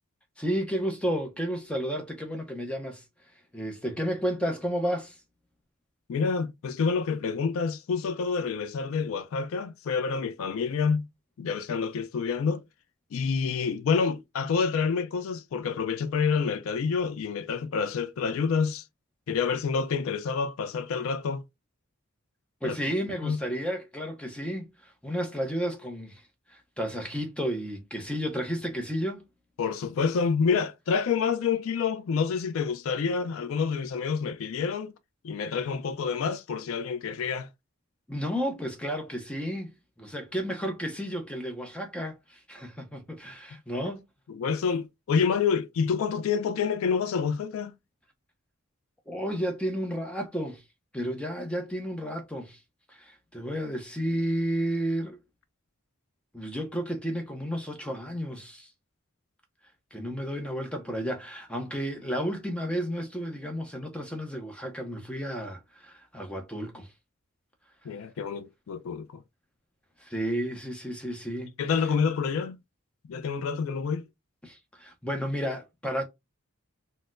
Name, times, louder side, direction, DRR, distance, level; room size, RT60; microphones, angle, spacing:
voice 1, 0.4-3.0 3.5-5.2 22.6-26.2 26.5-29.2 33.1-33.2 38.1-44.0 49.1-50.6 50.9-52.6 52.9-55.2 56.3-58.7 59.9-66.9 70.0-71.5 73.1-73.2 74.4-76.0, equal, 5° left, 0.5 m, -32 dB
voice 2, 6.1-11.1 11.4-12.6 13.1-18.8 19.3-21.4 22.6-22.8 23.2-23.4 29.6-34.9 35.2-37.5 44.3-47.7 67.9-69.2 71.6-72.6 73.1-74.0, left 5 dB, 80° left, 0.3 m, -28 dB
4.1 x 2.0 x 2.4 m
head